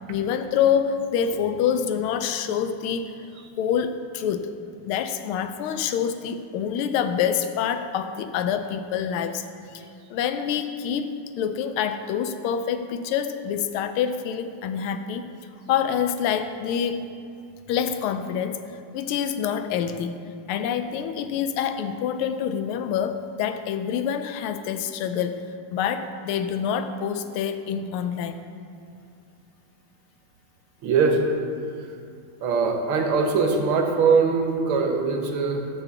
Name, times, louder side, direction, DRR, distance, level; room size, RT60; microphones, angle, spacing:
voice 1, 0.1-3.1 3.6-4.5 4.9-9.5 9.7-9.8 10.1-15.2 15.7-17.1 17.7-20.2 20.5-25.4 25.7-28.4, left 8 dB, 90° left, 9 dB, 1.5 m, -26 dB
voice 2, 30.8-31.2 31.8-31.9 32.4-35.7, right 5 dB, 90° right, 3 dB, 1.8 m, -22 dB
11.5 x 3.9 x 6.9 m, 2.4 s
omnidirectional pair, 2.3 m